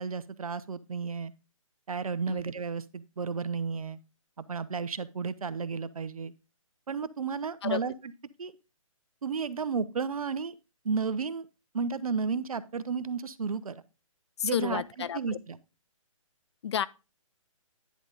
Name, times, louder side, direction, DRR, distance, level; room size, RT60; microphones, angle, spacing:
voice 1, 0.0-1.3 1.9-4.0 4.4-6.3 6.9-7.9 8.4-8.5 9.2-10.6 10.8-11.5 11.7-13.8 14.4-15.6, right 5 dB, 80° right, 0.7 m, -33 dB
voice 2, 14.4-15.4 16.6-16.9, left 8 dB, 50° left, 0.4 m, -31 dB
10.0 x 3.8 x 5.1 m
hypercardioid pair, 145°, 18 cm